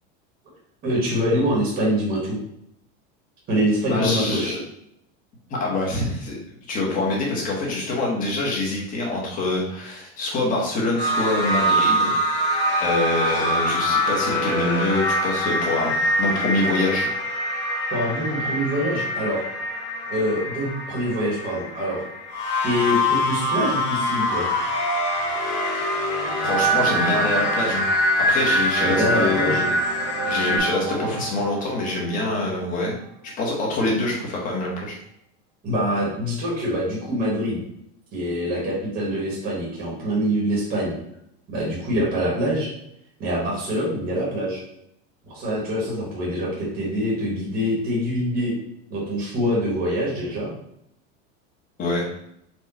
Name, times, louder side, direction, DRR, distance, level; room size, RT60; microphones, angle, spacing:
voice 1, 0.8-2.4 3.5-4.5 17.9-19.4 20.1-22.0 22.6-24.5 28.8-29.6 35.6-37.6 38.1-41.0 41.5-42.7 43.2-44.6 45.3-48.5 48.9-50.5, equal, 25° right, -5 dB, 1.2 m, -24 dB
voice 2, 3.9-4.6 5.5-6.4 6.7-12.1 12.8-17.1 26.4-27.9 28.2-29.7 30.2-33.0 33.4-34.9 51.8-52.1, left 2 dB, 25° left, -2 dB, 1.1 m, -25 dB
sound 1, 11.0-30.6, equal, 65° left, 1.4 m, -24 dB
sound 2, 25.5-25.8 26.3-33.1, right 6 dB, 45° right, 0.5 m, -32 dB
4.6 x 2.4 x 4.2 m, 0.75 s
supercardioid pair, 170°, 35 cm